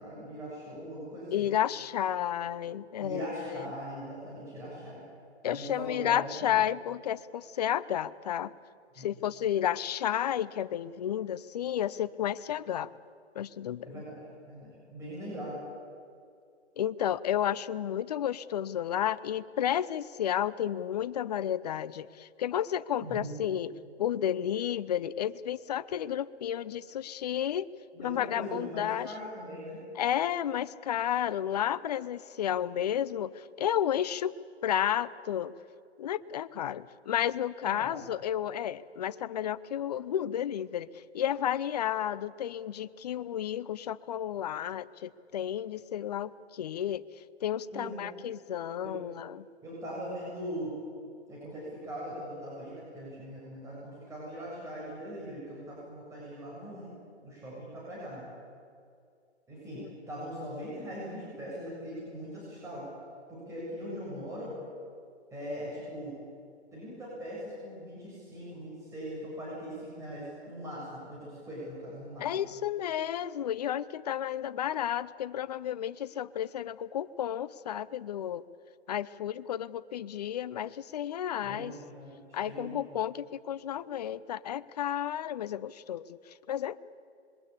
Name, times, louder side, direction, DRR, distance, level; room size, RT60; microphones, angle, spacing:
voice 1, 0.0-1.5 3.0-5.0 5.5-6.6 9.0-9.1 13.9-14.2 14.5-15.6 23.0-23.4 27.9-29.8 37.6-38.0 47.7-48.0 48.8-49.0 49.6-50.7 51.3-56.9 57.2-58.2 59.5-62.9 63.3-64.5 65.3-66.2 66.7-72.3 81.4-82.8, equal, 10° right, -6 dB, 7.3 m, -41 dB
voice 2, 1.3-3.7 5.4-8.5 9.0-12.9 13.3-14.0 16.8-23.7 24.0-27.7 28.0-29.1 30.0-34.3 34.6-35.5 36.0-47.0 47.4-49.5 59.8-59.9 72.2-78.4 78.9-81.7 82.3-86.8, left 10 dB, 35° left, 16 dB, 0.7 m, -32 dB
26.5 x 22.5 x 8.5 m, 2.3 s
hypercardioid pair, 140°, 34 cm